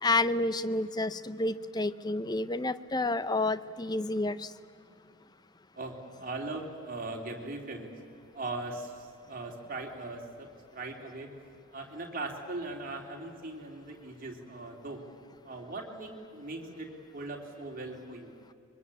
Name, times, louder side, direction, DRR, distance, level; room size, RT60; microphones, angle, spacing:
voice 1, 0.0-4.5, left 2 dB, 20° left, 15 dB, 0.5 m, -29 dB
voice 2, 5.7-7.9 8.3-10.5 10.7-11.3 11.7-15.0 15.4-18.3, right 2 dB, 40° right, 1 dB, 3.1 m, -39 dB
24.5 x 23.0 x 8.5 m, 2.5 s
head